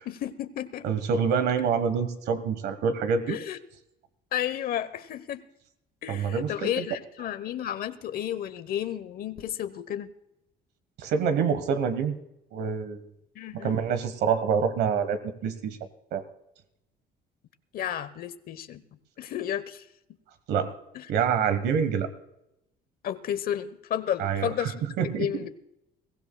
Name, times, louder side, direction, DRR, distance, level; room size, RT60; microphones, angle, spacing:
voice 1, 0.0-0.9 3.3-3.6 4.3-5.4 6.0-10.1 13.3-13.8 17.7-18.8 19.2-19.9 20.9-21.1 23.0-25.6, left 10 dB, 60° left, 13 dB, 0.9 m, -32 dB
voice 2, 0.8-3.4 6.1-6.8 11.0-12.2 12.5-13.0 13.5-15.8 16.1-16.2 20.5-20.7 21.1-22.1 24.2-24.5 25.0-25.3, right 6 dB, 75° right, 10 dB, 1.3 m, -26 dB
22.5 x 16.0 x 2.3 m, 0.84 s
cardioid pair, 110°, 17 cm